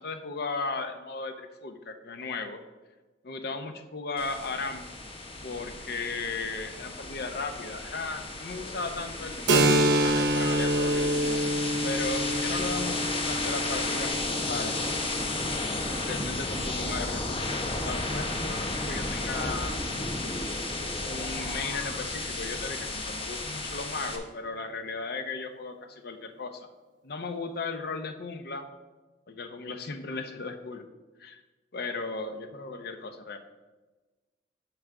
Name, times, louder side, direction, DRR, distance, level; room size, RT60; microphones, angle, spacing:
voice 1, 0.0-2.6 3.2-4.8 5.4-11.1 11.8-14.8 16.0-19.8 21.1-26.7 27.0-28.6 29.3-30.9 31.2-31.4 31.7-33.4, left 3 dB, 60° left, 7 dB, 0.7 m, -36 dB
sound 1, 4.2-24.2, left 2 dB, 30° left, 0.9 m, -33 dB
Keyboard (musical), 9.5-16.8, right 1 dB, 80° right, 0.9 m, -27 dB
11.5 x 4.7 x 3.7 m, 1.2 s
head